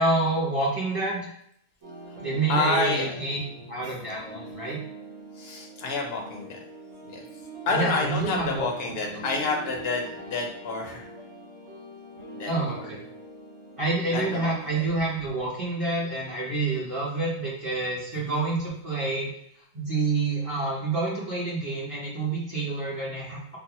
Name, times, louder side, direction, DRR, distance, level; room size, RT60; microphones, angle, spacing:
voice 1, 0.0-1.3 2.2-3.4 3.7-4.8 7.7-8.7 9.0-9.2 12.5-13.0 13.8-19.3 19.7-23.6, right 3 dB, 30° right, -7 dB, 0.8 m, -28 dB
sound 1, 1.8-14.6, right 2 dB, 85° right, 1.7 m, -43 dB
voice 2, 2.5-3.1 3.8-3.9 5.4-6.6 7.0-7.2 7.7-11.1 12.3-12.9 14.1-14.9 18.2-18.5, left 3 dB, 60° left, 1 dB, 0.7 m, -29 dB
3.9 x 2.1 x 2.9 m, 0.69 s
omnidirectional pair, 1.4 m